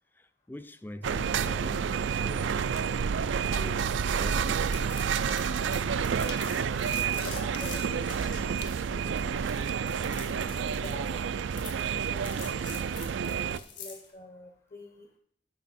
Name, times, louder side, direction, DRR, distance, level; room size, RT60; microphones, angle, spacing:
voice 1, 0.1-2.6 3.5-4.8, left 1 dB, 10° left, 0.5 m, -44 dB
reversing moving trucks, 1.0-13.6, right 6 dB, 80° right, 0.4 m, -29 dB
sound 1, 2.7-3.0 3.5-3.8 4.3-4.4 5.3-5.5 6.2-6.6 7.5-7.7 8.6-9.9, left 11 dB, 65° left, 0.5 m, -48 dB
sound 2, 4.4-14.1, left 6 dB, 80° left, 2.7 m, -45 dB
voice 2, 6.9-11.4 11.9-13.0 13.2-15.1, left 1 dB, 45° left, 1.1 m, -48 dB
12.0 x 6.9 x 4.2 m
head